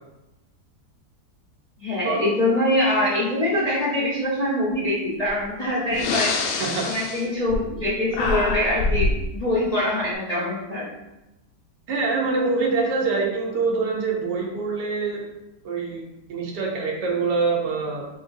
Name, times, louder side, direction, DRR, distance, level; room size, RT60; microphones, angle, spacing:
voice 1, 1.8-6.3 6.8-10.9, left 1 dB, 55° left, -7 dB, 0.4 m, -24 dB
Breathing, 5.3-5.4 5.9-7.9 8.1-9.2, left 3 dB, 90° left, 1.2 m, -25 dB
voice 2, 6.6-6.9 11.9-15.3 15.6-16.0 16.3-18.0, right 4 dB, 90° right, -1 dB, 1.3 m, -25 dB
5.3 x 2.5 x 2.5 m, 0.96 s
omnidirectional pair, 1.8 m